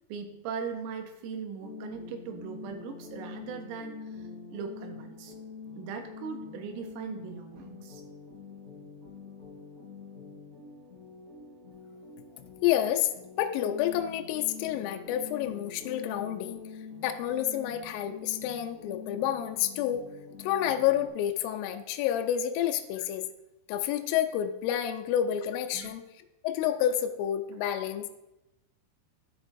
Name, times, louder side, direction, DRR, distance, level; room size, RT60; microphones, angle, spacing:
voice 1, 0.1-5.4 5.8-8.0 25.7-25.9, right 6 dB, 85° right, 5 dB, 3.5 m, -39 dB
sound 1, 1.6-21.1, left 4 dB, 20° right, 2.5 m, -45 dB
voice 2, 12.6-13.1 13.4-16.6 17.0-20.0 20.4-23.2 23.7-26.0 26.4-28.2, left 11 dB, 90° left, 5 dB, 3.2 m, -29 dB
14.0 x 5.4 x 2.6 m, 0.94 s
omnidirectional pair, 5.7 m